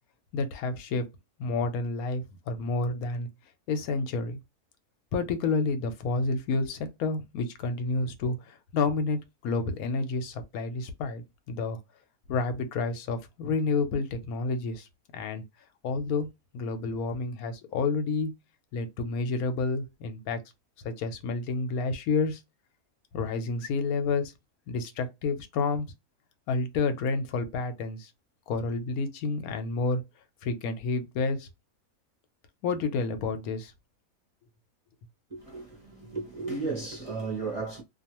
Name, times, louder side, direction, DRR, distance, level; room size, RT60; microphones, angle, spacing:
voice 1, 0.3-1.1 1.4-3.3 3.7-4.4 5.1-11.8 12.3-14.9 15.1-15.4 15.8-16.3 16.5-18.3 18.7-20.4 20.8-22.4 23.1-24.3 24.7-25.9 26.5-28.1 28.5-30.0 30.4-31.5 32.6-33.7, left 3 dB, 85° left, 1.1 m, -29 dB
voice 2, 35.3-37.8, right 3 dB, 35° right, 0.6 m, -34 dB
2.4 x 2.4 x 2.9 m
omnidirectional pair, 1.5 m